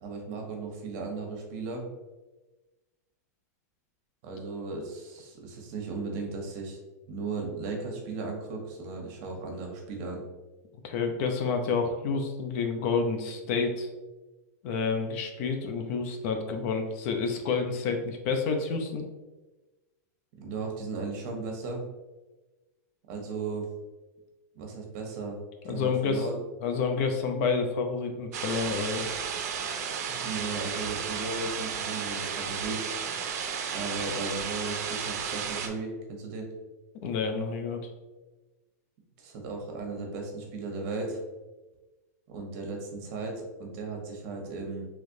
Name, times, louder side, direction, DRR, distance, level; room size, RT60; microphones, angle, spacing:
voice 1, 0.0-1.9 4.2-6.8 7.1-10.2 20.4-21.8 23.1-23.7 24.5-25.4 25.6-26.3 29.7-32.9 33.7-36.5 39.2-41.2 42.3-44.9, right 3 dB, 55° right, 1 dB, 0.9 m, -36 dB
voice 2, 10.8-13.9 14.6-19.0 25.6-26.3 26.6-29.0 37.0-37.8, left 5 dB, 55° left, 5 dB, 0.5 m, -29 dB
sound 1, 28.3-35.7, right 6 dB, 70° right, 0.5 m, -33 dB
3.2 x 3.1 x 2.6 m, 1.2 s
hypercardioid pair, 125°, 9 cm